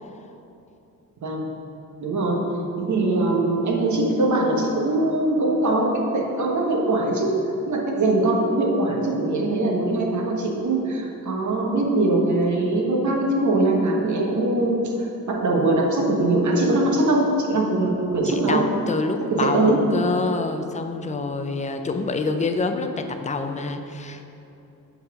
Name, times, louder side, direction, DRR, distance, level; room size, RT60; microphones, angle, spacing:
voice 1, 2.0-2.4 2.8-7.4 7.7-14.9 15.3-18.6 19.3-19.8, right 2 dB, 55° right, -1 dB, 1.2 m, -22 dB
voice 2, 18.2-24.2, left 3 dB, 20° left, 6 dB, 0.4 m, -26 dB
7.7 x 4.2 x 5.8 m, 2.8 s
wide cardioid pair, 125°, 35 cm